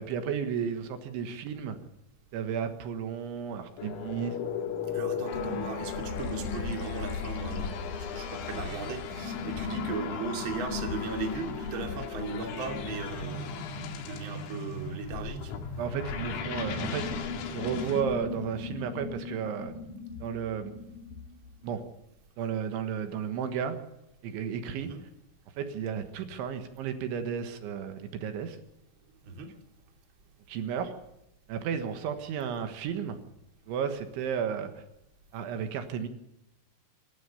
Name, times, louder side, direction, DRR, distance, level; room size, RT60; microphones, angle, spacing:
voice 1, 0.0-1.8 2.3-4.4 15.8-17.1 17.5-19.7 20.2-20.7 21.6-21.8 22.4-23.8 24.2-24.9 25.6-28.6 30.5-30.9 31.5-33.2 33.7-34.8 35.3-36.1, right 7 dB, 75° right, 7 dB, 3.6 m, -33 dB
sound 1, 3.8-18.0, left 7 dB, 85° left, 4.8 m, -38 dB
voice 2, 4.9-15.5 24.8-25.0 29.2-29.5, right 4 dB, 35° right, 3 dB, 2.4 m, -37 dB
sound 2, 5.3-21.7, left 4 dB, 60° left, 2.4 m, -38 dB
28.0 x 13.5 x 7.0 m, 0.85 s
omnidirectional pair, 5.8 m